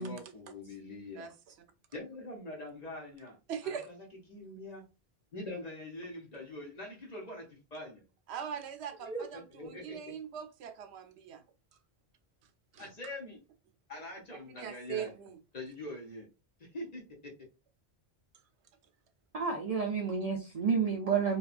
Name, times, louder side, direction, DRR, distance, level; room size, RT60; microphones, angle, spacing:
voice 1, 0.0-1.3 1.9-3.4 3.6-4.8 5.3-8.0 9.0-10.1 12.8-13.4 13.9-15.2 15.5-16.3 16.6-17.3, left 1 dB, 45° left, 0.9 m, -43 dB
voice 2, 3.5-3.9 8.3-9.4 9.7-11.4 12.7-12.9 14.3-15.4, right 8 dB, 85° right, 0.8 m, -41 dB
voice 3, 19.3-21.4, right 6 dB, 50° right, 0.4 m, -30 dB
2.8 x 2.3 x 2.4 m
omnidirectional pair, 1.1 m